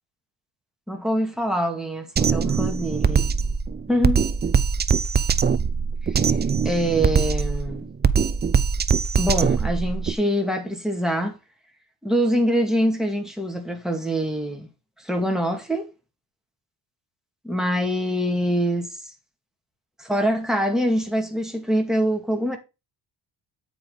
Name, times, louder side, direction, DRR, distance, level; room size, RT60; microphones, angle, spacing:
voice 1, 0.9-3.3 3.9-4.2 6.0-6.3 6.6-7.9 9.2-11.4 12.0-14.7 15.0-15.9 17.4-18.9 20.0-22.6, equal, ahead, 2.1 m, -24 dB
Drum kit, 2.2-10.1, right 6 dB, 25° right, 0.4 m, -22 dB
8.9 x 5.2 x 3.9 m
cardioid pair, 110°, 44 cm